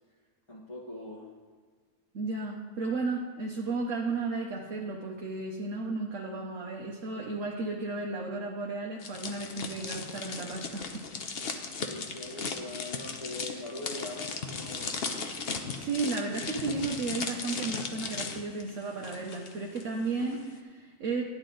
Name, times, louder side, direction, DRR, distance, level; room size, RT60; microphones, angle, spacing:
voice 1, 0.5-1.3 11.9-14.9, left 2 dB, 20° left, -6 dB, 1.1 m, -41 dB
voice 2, 2.1-11.3 15.8-21.2, right 3 dB, 55° right, -1 dB, 1.2 m, -34 dB
sound 1, 9.0-19.8 20.1-20.4, left 4 dB, 50° left, 0.8 m, -37 dB
11.0 x 10.5 x 3.9 m, 1.5 s
omnidirectional pair, 1.7 m